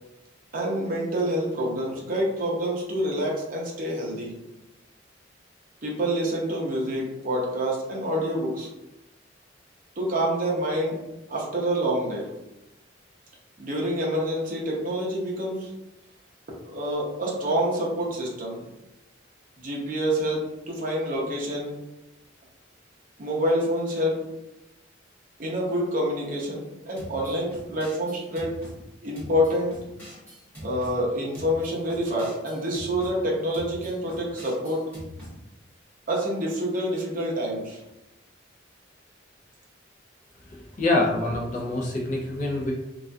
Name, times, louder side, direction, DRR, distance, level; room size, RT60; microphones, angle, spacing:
voice 1, 0.5-4.3 5.8-8.7 10.0-11.0 11.3-12.3 13.6-15.7 16.6-18.7 19.6-21.7 23.2-24.2 25.4-28.6 29.0-29.8 30.6-34.9 36.1-37.8, equal, 45° right, -3 dB, 0.6 m, -27 dB
sound 1, 27.0-28.8 29.1-31.0 31.3-33.1 33.5-35.3, left 1 dB, 10° left, 1.0 m, -42 dB
voice 2, 40.8-42.7, left 2 dB, 40° left, -3 dB, 0.4 m, -25 dB
2.3 x 2.2 x 2.5 m, 0.94 s
head